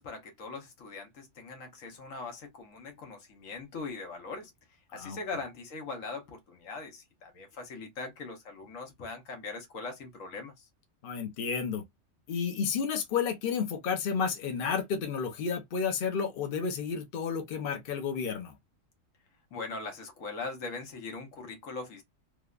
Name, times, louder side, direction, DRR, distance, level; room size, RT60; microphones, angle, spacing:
voice 1, 0.0-4.5 4.9-10.7 19.5-22.0, left 3 dB, 80° left, 1.3 m, -41 dB
voice 2, 11.0-11.8 12.3-18.6, left 6 dB, 50° left, 0.8 m, -31 dB
3.3 x 2.1 x 2.4 m
omnidirectional pair, 1.3 m